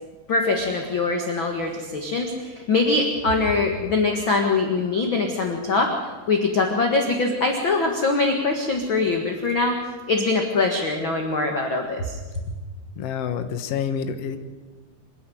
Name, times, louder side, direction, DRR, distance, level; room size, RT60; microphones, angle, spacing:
voice 1, 0.3-5.9 6.3-9.8 10.1-12.2, left 3 dB, 45° left, 3 dB, 1.8 m, -23 dB
voice 2, 13.0-14.4, left 7 dB, 65° left, 9 dB, 1.6 m, -28 dB
26.5 x 10.5 x 9.3 m, 1.3 s
omnidirectional pair, 4.4 m